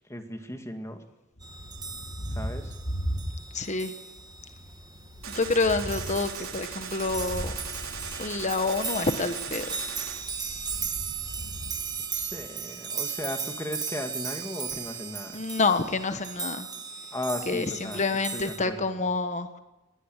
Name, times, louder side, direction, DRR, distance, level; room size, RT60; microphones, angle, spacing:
voice 1, 0.1-1.0 2.3-2.7 12.1-15.4 17.1-18.1 18.3-18.9, left 1 dB, 15° left, 6 dB, 2.1 m, -36 dB
Thunder, 1.4-3.8 4.1-8.9 10.0-12.6, equal, 65° left, 3.7 m, -38 dB
sound 1, 1.4-18.6, right 6 dB, 20° right, 1.6 m, -37 dB
voice 2, 3.5-3.9 5.3-7.5 8.2-9.8 15.3-16.7 17.5-19.6, left 3 dB, 35° left, 9 dB, 1.3 m, -28 dB
Gunshot gunfire, 5.2-10.2, right 7 dB, 85° right, 3.3 m, -39 dB
20.0 x 17.5 x 9.1 m, 1.0 s
head